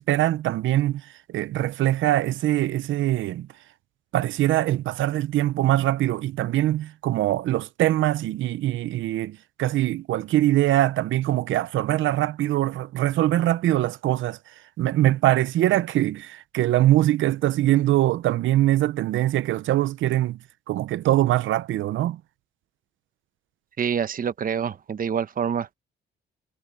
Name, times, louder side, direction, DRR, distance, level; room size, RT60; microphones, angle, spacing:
voice 1, 0.0-3.5 4.1-14.4 14.8-20.4 20.7-22.2, right 14 dB, 75° right, 0.7 m, -23 dB
voice 2, 23.8-25.7, right 7 dB, 45° right, 1.0 m, -26 dB
cardioid pair, 90°, 20 cm